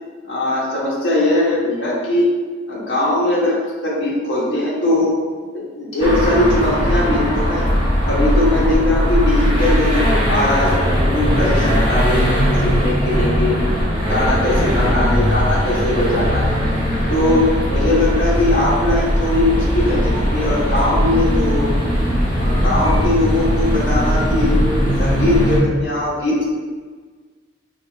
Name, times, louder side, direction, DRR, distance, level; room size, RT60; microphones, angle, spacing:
voice 1, 0.3-2.3 2.7-5.2 5.5-7.7 8.0-13.5 14.0-16.6 17.1-21.7 22.4-24.5 25.0-26.4, left 1 dB, 75° left, -7 dB, 1.5 m, -20 dB
sound 1, 6.0-25.6, equal, 25° right, 1.2 m, -18 dB
4.9 x 3.8 x 2.4 m, 1.5 s
head